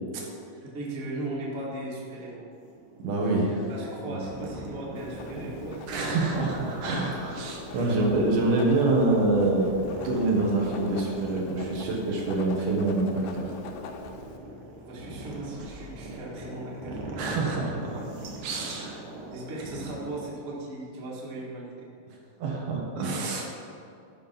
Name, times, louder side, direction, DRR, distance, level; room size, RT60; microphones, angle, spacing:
voice 1, 0.7-2.4 3.7-5.9 7.7-7.9 14.8-17.2 19.3-21.9, right 2 dB, 30° right, -5 dB, 1.1 m, -37 dB
sound 1, 2.5-20.2, right 1 dB, 60° right, 1.8 m, -41 dB
voice 2, 3.0-3.6 4.0-4.2 5.9-9.8 10.0-13.5 17.2-18.0 18.4-19.0 22.4-23.4, right 2 dB, 80° right, -2 dB, 3.5 m, -26 dB
Writing, 5.0-14.4, left 5 dB, 80° left, 2.6 m, -43 dB
12.0 x 5.5 x 5.9 m, 2.5 s
omnidirectional pair, 4.4 m